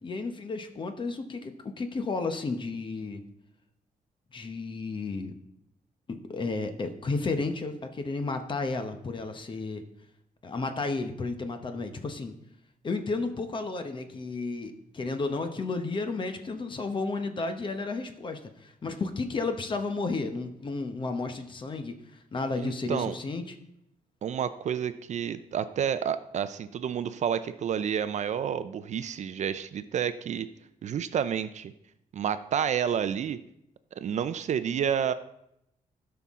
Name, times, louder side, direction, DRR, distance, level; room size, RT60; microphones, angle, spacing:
voice 1, 0.0-3.2 4.3-5.3 6.1-9.9 10.4-12.3 12.8-22.0 22.3-23.5, left 3 dB, 35° left, 7 dB, 0.9 m, -32 dB
voice 2, 22.6-23.1 24.2-30.5 30.8-31.7 32.1-33.4 34.0-35.1, right 8 dB, 50° right, 13 dB, 0.4 m, -30 dB
16.5 x 5.8 x 3.6 m, 0.79 s
wide cardioid pair, 155°, 15 cm